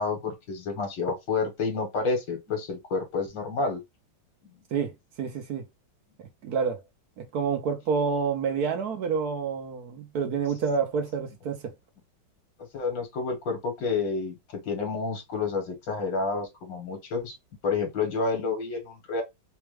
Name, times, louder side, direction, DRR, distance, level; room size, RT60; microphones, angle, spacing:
voice 1, 0.0-3.8 12.7-17.3 17.6-19.2, left 4 dB, 85° left, 2.2 m, -29 dB
voice 2, 4.7-5.7 6.4-6.8 7.2-11.7, right 5 dB, 65° right, 1.2 m, -28 dB
4.4 x 2.3 x 3.1 m
omnidirectional pair, 2.0 m